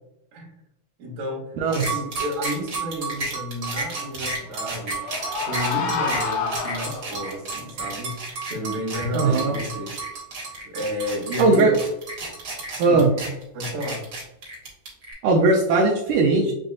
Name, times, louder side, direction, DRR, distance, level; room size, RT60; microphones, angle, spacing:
voice 1, 1.0-5.0 5.5-10.0 10.6-11.8 12.7-13.1 13.5-14.1, left 1 dB, 65° right, -3 dB, 2.4 m, -31 dB
sound 1, 1.7-15.1, right 3 dB, 50° right, 1.9 m, -31 dB
sound 2, 4.4-7.4, left 5 dB, 75° left, 1.5 m, -28 dB
voice 2, 9.1-9.6 11.4-11.7 12.8-13.1 15.2-16.5, right 3 dB, 85° right, 0 dB, 1.8 m, -18 dB
7.4 x 2.6 x 2.3 m, 0.84 s
omnidirectional pair, 4.3 m